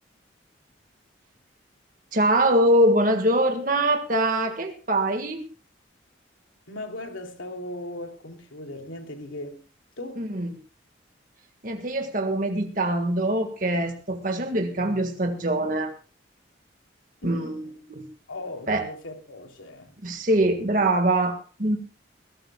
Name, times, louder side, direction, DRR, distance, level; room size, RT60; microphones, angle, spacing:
voice 1, 2.1-5.4 10.2-10.5 11.6-15.9 17.2-17.6 17.9-18.0 18.7-18.8 20.0-21.8, right 1 dB, 45° right, 1.7 m, -23 dB
voice 2, 6.7-9.6 10.0-10.3 17.2-17.7 18.3-19.9, left 1 dB, 85° left, 3.1 m, -38 dB
21.0 x 17.0 x 2.3 m
head